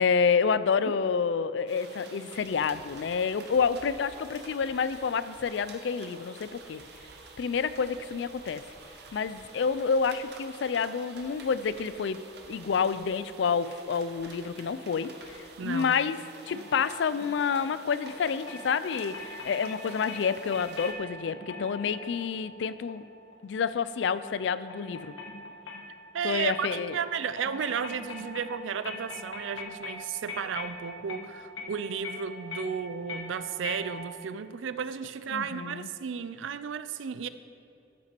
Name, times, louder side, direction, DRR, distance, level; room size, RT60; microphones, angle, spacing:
voice 1, 0.0-6.8 7.4-8.6 9.1-12.2 12.5-16.2 16.5-23.1 23.4-25.1 26.2-27.0 35.3-35.9, left 6 dB, 70° left, 15 dB, 0.4 m, -28 dB
sound 1, 1.7-20.9, right 3 dB, 60° right, 0.9 m, -49 dB
voice 2, 15.6-15.9 26.1-37.3, right 7 dB, 85° right, 13 dB, 0.4 m, -33 dB
sound 2, 16.5-34.3, left 3 dB, 90° left, 1.2 m, -43 dB
12.5 x 6.0 x 4.4 m, 2.7 s
head